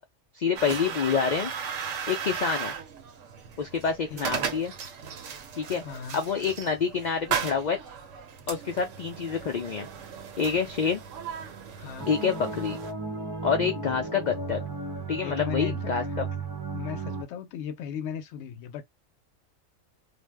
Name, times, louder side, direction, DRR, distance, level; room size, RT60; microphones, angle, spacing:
voice 1, 0.3-1.5 2.1-2.7 3.6-4.7 5.6-5.8 6.1-7.8 8.5-9.9 10.4-11.0 12.1-12.8 13.4-14.6 15.1-16.3, left 6 dB, 90° left, 0.4 m, -27 dB
sound 1, 0.6-12.9, right 7 dB, 80° right, 1.0 m, -36 dB
voice 2, 4.1-4.5 5.8-6.3 11.8-12.1 15.2-15.9 16.7-18.9, left 7 dB, 70° left, 0.8 m, -36 dB
sound 2, 12.0-17.2, right 4 dB, 30° right, 0.5 m, -34 dB
2.4 x 2.1 x 3.3 m
omnidirectional pair, 1.3 m